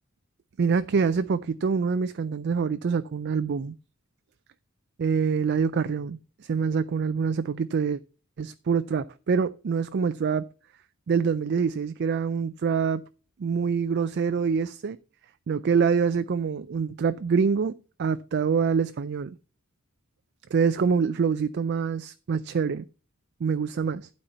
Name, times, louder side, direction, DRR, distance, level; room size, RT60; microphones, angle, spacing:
voice 1, 0.6-3.7 5.0-8.0 8.4-10.5 11.1-13.0 13.4-15.0 15.5-19.4 20.5-22.9 23.4-24.1, right 6 dB, 50° right, 0.4 m, -25 dB
12.0 x 4.2 x 5.5 m
head